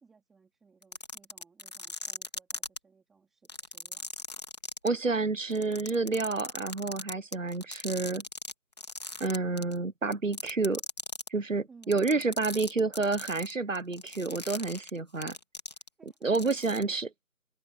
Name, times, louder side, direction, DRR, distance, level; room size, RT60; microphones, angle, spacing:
voice 1, 0.0-4.1 11.7-12.7 16.0-17.0, right 5 dB, ahead, 3.4 m, -59 dB
sound 1, 0.8-2.8 3.5-4.9 5.5-8.5 8.8-9.8 10.1-11.3 11.8-16.1 16.4-16.8, left 2 dB, 25° left, 3.2 m, -39 dB
voice 2, 4.8-8.2 9.2-10.8 11.3-15.4 16.2-17.1, right 3 dB, 55° right, 1.1 m, -29 dB
figure-of-eight pair, 170°, 46 cm